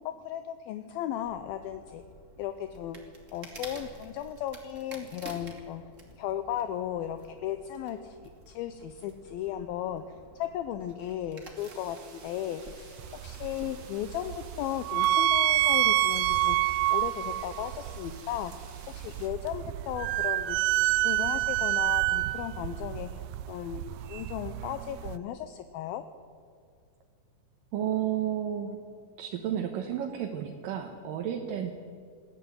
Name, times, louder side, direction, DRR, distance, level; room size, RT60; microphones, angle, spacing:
voice 1, 0.1-2.0 2.4-3.0 3.3-5.8 6.2-13.0 13.2-18.5 18.9-20.6 20.8-23.8 24.1-26.0, left 11 dB, 75° left, 10 dB, 2.5 m, -36 dB
sound 1, 1.2-13.8, right 2 dB, 25° right, 2.3 m, -50 dB
sound 2, 11.5-19.3, right 5 dB, 45° right, 2.8 m, -52 dB
sound 3, 13.0-25.2, right 15 dB, 90° right, 1.8 m, -28 dB
voice 2, 27.7-28.8 29.2-31.7, right 10 dB, 70° right, 3 dB, 2.6 m, -32 dB
20.0 x 14.5 x 9.6 m, 2.2 s
omnidirectional pair, 4.5 m